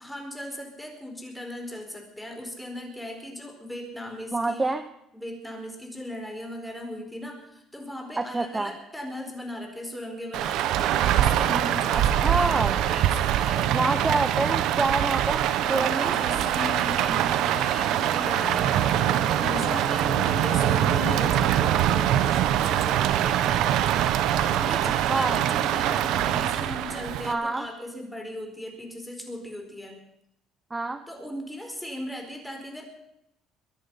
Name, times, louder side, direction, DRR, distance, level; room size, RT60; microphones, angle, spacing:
voice 1, 0.0-4.7 5.1-13.8 15.6-24.0 24.3-30.0 31.1-32.8, left 1 dB, 5° left, 3 dB, 4.6 m, -38 dB
voice 2, 4.3-4.8 8.2-8.7 12.2-12.7 13.7-16.1 25.1-25.4 27.3-27.6 30.7-31.0, right 3 dB, 20° right, 10 dB, 0.9 m, -26 dB
Rain, 10.3-27.3, right 11 dB, 75° right, 1.1 m, -24 dB
sound 1, 15.6-23.4, left 4 dB, 65° left, 4.5 m, -38 dB
23.0 x 10.5 x 5.7 m, 0.79 s
cardioid pair, 95°, 0 cm